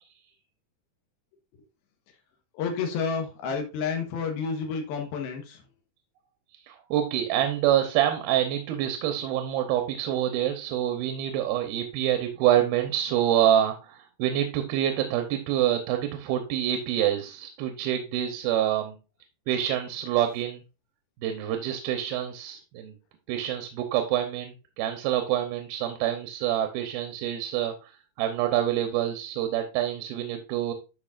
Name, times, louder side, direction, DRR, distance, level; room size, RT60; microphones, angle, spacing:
voice 1, 2.5-5.7, left 5 dB, 85° left, 3 dB, 3.1 m, -30 dB
voice 2, 6.5-19.0 19.5-20.6 21.2-22.9 23.3-30.7, right 11 dB, 85° right, 6 dB, 2.7 m, -26 dB
12.5 x 4.5 x 2.4 m, 0.30 s
omnidirectional pair, 4.3 m